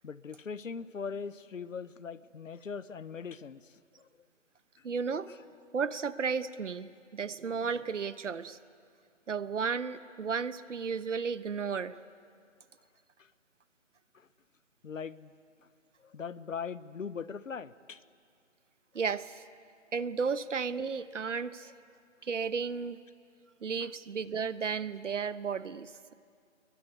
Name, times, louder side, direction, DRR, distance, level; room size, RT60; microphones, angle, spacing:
voice 1, 0.0-4.1 5.3-5.4 13.2-13.3 14.1-14.3 14.8-15.3 16.0-18.0 23.8-23.9, left 6 dB, 85° left, 16 dB, 1.1 m, -41 dB
voice 2, 4.8-5.3 5.7-8.6 9.3-12.0 18.9-19.4 19.9-21.7 22.2-23.0 23.6-26.1, right 5 dB, 70° right, 14 dB, 1.2 m, -33 dB
28.0 x 22.0 x 9.4 m, 2.3 s
hypercardioid pair, 170°, 38 cm